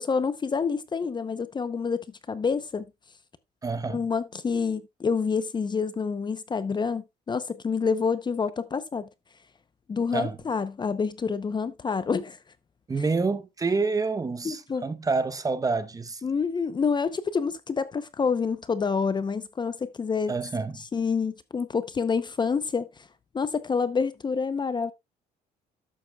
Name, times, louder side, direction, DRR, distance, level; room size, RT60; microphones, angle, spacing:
voice 1, 0.0-2.8 3.9-9.1 9.9-12.4 14.4-14.9 16.2-20.3 20.8-23.1 23.3-24.9, left 5 dB, 25° left, 0.7 m, -28 dB
voice 2, 3.6-4.0 10.1-10.4 12.9-16.2 20.3-20.8, right 4 dB, 20° right, 0.9 m, -28 dB
12.0 x 8.4 x 2.3 m
cardioid pair, 110°, 17 cm